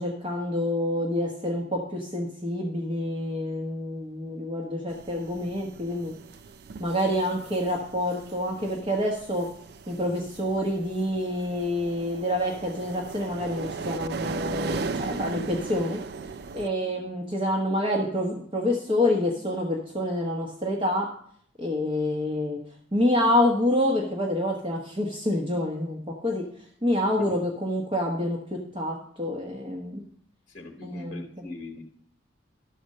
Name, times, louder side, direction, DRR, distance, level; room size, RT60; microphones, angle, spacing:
voice 1, 0.0-6.1 6.8-9.5 9.9-16.0 16.5-21.1 21.6-22.6 22.9-26.5 26.8-30.1 30.8-31.4, left 1 dB, 30° right, 0 dB, 1.0 m, -27 dB
sound 1, 4.9-16.7, right 4 dB, 55° right, 0.4 m, -37 dB
voice 2, 30.5-31.8, left 2 dB, 40° left, 4 dB, 1.0 m, -41 dB
11.5 x 4.3 x 6.5 m, 0.63 s
head